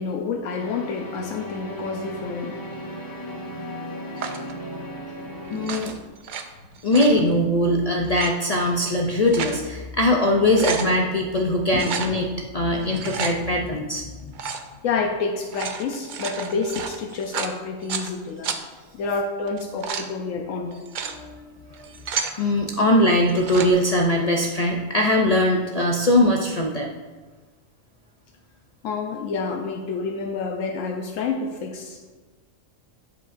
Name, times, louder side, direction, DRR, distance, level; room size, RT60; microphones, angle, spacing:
voice 1, 0.0-2.6 11.7-11.8 14.8-18.5 18.9-20.9 28.8-32.1, left 4 dB, 85° left, 2 dB, 1.0 m, -28 dB
sound 1, 0.5-5.7, equal, 20° left, 0.7 m, -36 dB
sound 2, 4.2-4.5 5.5-6.4 6.7-7.2 8.0-8.3 9.0-9.6 10.0-10.1 10.4-10.9 11.7-12.1 12.8-13.3 14.3-14.7 15.4-18.1 18.4-18.6 19.5-20.1 20.7-21.1 21.7-22.4 23.2-23.7, right 6 dB, 60° right, 0.5 m, -31 dB
voice 2, 5.5-5.9 6.8-14.1 21.0-21.9 22.3-26.9, left 1 dB, 60° left, 1 dB, 0.4 m, -21 dB
11.0 x 5.0 x 2.5 m, 1.3 s
omnidirectional pair, 1.3 m